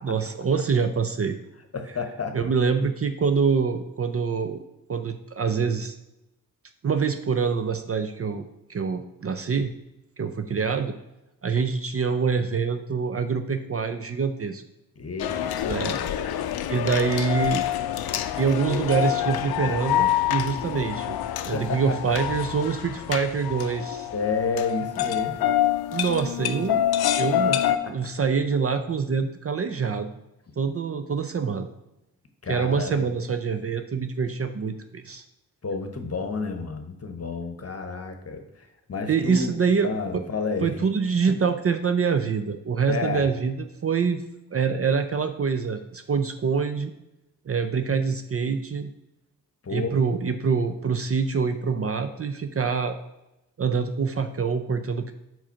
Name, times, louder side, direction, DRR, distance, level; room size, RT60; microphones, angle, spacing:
voice 1, 0.0-1.4 2.3-4.6 4.9-6.0 6.8-9.7 10.2-10.9 11.4-14.6 15.6-16.0 16.2-16.4 16.7-17.6 18.4-21.2 21.5-24.1 25.9-26.8 27.2-27.6 27.9-30.1 30.6-31.7 32.5-35.2 39.1-40.2 40.6-44.2 44.5-46.9 47.5-48.9 49.7-52.9 53.6-55.1, right 5 dB, 35° right, 9 dB, 0.5 m, -25 dB
voice 2, 1.7-2.4 15.0-15.5 21.5-22.0 24.1-25.3 27.8-27.9 32.4-33.1 35.6-38.4 38.9-39.6 39.8-40.7 42.9-43.3 49.6-49.9, left 4 dB, 35° left, 6 dB, 1.1 m, -30 dB
sound 1, 15.2-27.8, left 11 dB, 65° left, 0.5 m, -26 dB
4.8 x 3.8 x 5.7 m, 0.92 s
supercardioid pair, 40°, 41 cm